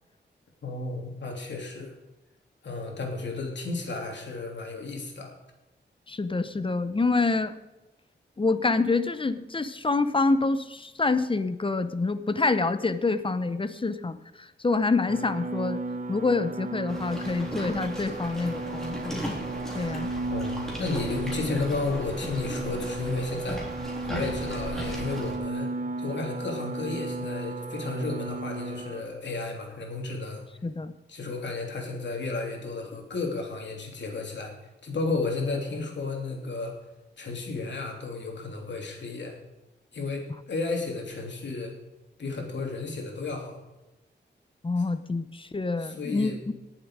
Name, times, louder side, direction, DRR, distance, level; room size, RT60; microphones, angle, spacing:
voice 1, 0.6-2.0 2.6-5.3 20.3-20.5 20.8-23.6 24.0-30.4 31.1-34.5 34.8-36.7 37.2-39.4 39.9-41.7 42.2-43.6 45.8-46.4, left 3 dB, 75° left, 1 dB, 3.0 m, -33 dB
voice 2, 6.1-7.5 8.4-15.8 16.1-19.4 19.7-20.1 30.6-30.9 44.6-46.3, left 3 dB, 30° left, 12 dB, 0.7 m, -27 dB
sound 1, 15.1-29.0, right 3 dB, 45° right, 1.1 m, -35 dB
sound 2, 16.9-25.4, equal, ahead, 3.7 m, -37 dB
19.0 x 7.5 x 4.8 m, 1.0 s
wide cardioid pair, 120°, 19 cm